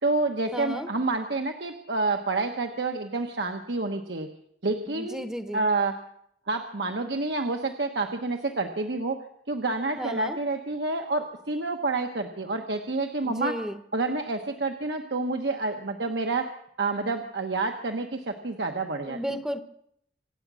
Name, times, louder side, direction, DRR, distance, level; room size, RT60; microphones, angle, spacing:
voice 1, 0.0-4.3 4.6-5.2 5.5-5.9 6.5-9.2 9.5-13.5 13.9-16.5 16.8-19.2, right 3 dB, 75° right, 4 dB, 1.1 m, -28 dB
voice 2, 0.5-0.9 4.9-5.7 10.0-10.4 13.2-13.8 19.1-19.6, equal, 5° right, 8 dB, 0.8 m, -33 dB
25.5 x 9.3 x 6.2 m, 0.72 s
head